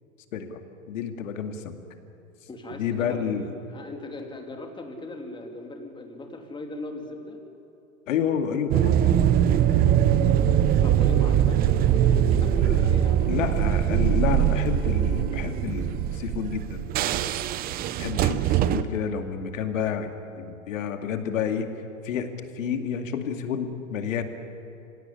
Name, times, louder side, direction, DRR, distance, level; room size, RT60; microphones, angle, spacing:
voice 1, 0.9-1.8 2.7-3.5 8.1-9.2 12.6-12.8 13.3-16.8 18.0-20.1 20.4-21.7 22.0-24.2, left 7 dB, 70° left, 6 dB, 2.4 m, -29 dB
voice 2, 2.5-3.4 3.7-7.4 10.8-13.3, left 2 dB, 10° left, 3 dB, 2.9 m, -38 dB
sound 1, 8.7-18.8, right 10 dB, 20° right, 0.7 m, -22 dB
24.5 x 17.0 x 9.9 m, 2.8 s
hypercardioid pair, 125°, 41 cm